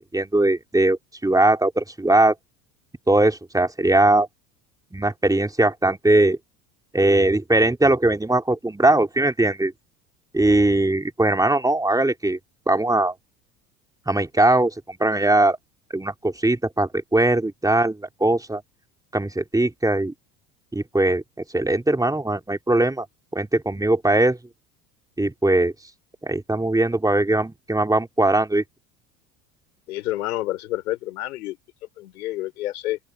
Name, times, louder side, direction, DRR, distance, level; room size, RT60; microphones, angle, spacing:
voice 1, 0.0-2.3 3.1-4.3 4.9-6.4 6.9-9.7 10.3-12.4 12.7-13.1 14.1-15.6 15.9-18.6 19.1-20.1 20.7-21.2 21.5-23.1 23.3-24.4 25.2-25.7 26.2-28.6, right 2 dB, 10° right, 3.8 m, -20 dB
voice 2, 29.9-31.6 32.0-33.0, left 16 dB, 75° left, 4.1 m, -29 dB
open air
hypercardioid pair, 70°, 45 cm